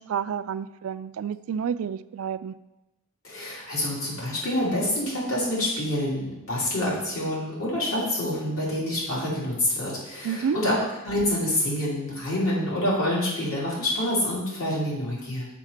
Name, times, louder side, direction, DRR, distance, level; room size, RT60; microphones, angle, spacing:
voice 1, 0.0-2.5 10.2-10.6, right 7 dB, 75° right, 15 dB, 0.3 m, -29 dB
voice 2, 3.2-10.8 11.0-15.5, left 1 dB, 75° left, -6 dB, 3.3 m, -27 dB
7.1 x 5.6 x 5.8 m, 0.96 s
head